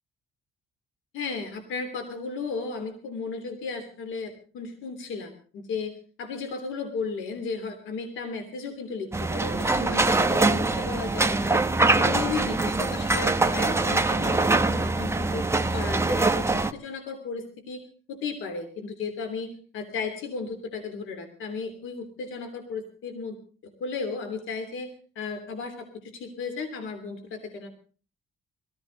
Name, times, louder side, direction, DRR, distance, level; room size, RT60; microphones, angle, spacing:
voice 1, 1.1-5.9 6.2-11.6 12.0-15.4 15.7-17.8 18.1-23.3 23.8-24.9 25.1-27.7, left 4 dB, 85° left, 7 dB, 3.1 m, -34 dB
sound 1, 9.1-16.7, right 3 dB, 15° right, 1.1 m, -23 dB
21.5 x 15.0 x 3.9 m, 0.39 s
cardioid pair, 90°, 20 cm